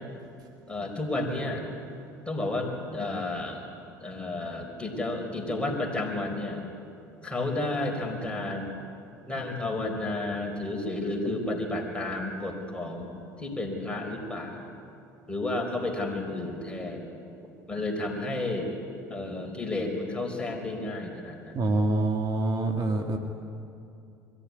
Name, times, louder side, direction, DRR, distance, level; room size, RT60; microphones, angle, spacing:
voice 1, 0.7-1.6 2.3-3.6 4.0-6.6 7.2-8.7 9.3-13.1 13.4-14.7 15.3-17.0 17.7-18.7 19.1-21.6, left 2 dB, 10° left, 2 dB, 4.8 m, -31 dB
voice 2, 21.6-23.2, right 2 dB, 45° right, 4 dB, 1.8 m, -26 dB
23.0 x 14.5 x 9.7 m, 2.6 s
hypercardioid pair, 70°, 9 cm